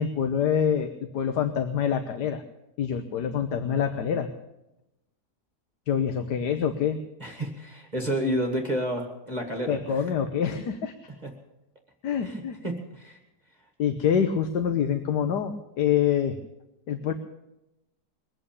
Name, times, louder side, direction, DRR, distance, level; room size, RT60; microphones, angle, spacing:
voice 1, 0.0-2.4 2.8-4.3 5.9-7.0 9.7-10.9 12.0-12.6 13.8-16.4 16.9-17.1, left 8 dB, 85° left, 7 dB, 1.6 m, -26 dB
voice 2, 7.2-10.0 11.2-11.3 12.2-13.2, equal, 25° right, 2 dB, 2.0 m, -30 dB
22.5 x 8.9 x 7.0 m, 0.91 s
omnidirectional pair, 1.7 m